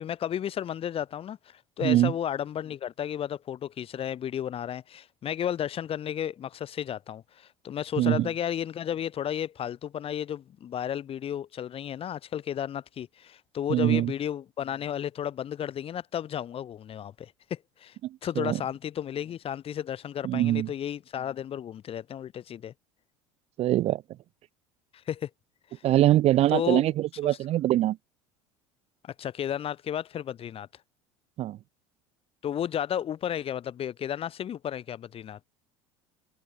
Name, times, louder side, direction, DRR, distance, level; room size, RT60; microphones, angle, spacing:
voice 1, 0.0-22.7 25.1-25.3 25.7-25.8 26.5-26.8 29.0-30.7 32.4-35.4, left 10 dB, 45° left, 1.9 m, -33 dB
voice 2, 1.8-2.1 8.0-8.3 13.7-14.1 18.4-18.6 20.2-20.7 23.6-24.0 25.8-28.0 31.4-31.6, right 14 dB, 45° right, 0.5 m, -23 dB
hypercardioid pair, 75°, 14 cm